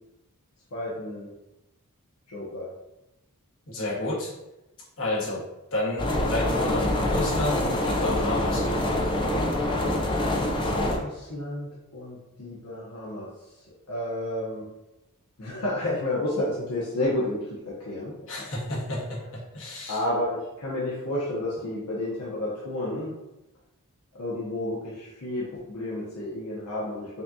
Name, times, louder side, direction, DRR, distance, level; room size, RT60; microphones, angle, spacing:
voice 1, 0.7-1.3 2.3-2.7 10.6-13.3 13.9-14.7 15.4-17.4 17.7-18.1 19.9-23.1 24.2-27.2, left 1 dB, 85° left, -6 dB, 0.9 m, -31 dB
voice 2, 3.7-4.3 5.0-5.4 5.7-9.2 18.2-20.0, left 1 dB, 65° left, -6 dB, 1.3 m, -31 dB
sound 1, 6.0-11.0, left 1 dB, 20° left, 0.4 m, -25 dB
5.4 x 2.3 x 2.7 m, 0.94 s
head